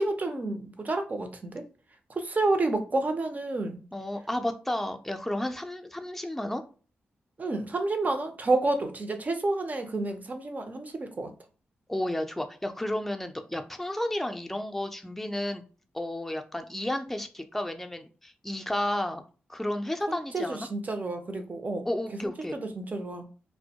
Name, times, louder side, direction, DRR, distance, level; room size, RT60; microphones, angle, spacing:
voice 1, 0.0-1.6 2.1-3.8 7.4-11.3 20.1-21.9 22.2-23.2, right 2 dB, 40° right, 0.6 m, -30 dB
voice 2, 3.9-6.6 11.9-15.6 15.9-19.2 19.5-20.7 21.8-22.6, left 1 dB, 5° left, 0.5 m, -32 dB
2.1 x 2.1 x 2.7 m
cardioid pair, 55°, 4 cm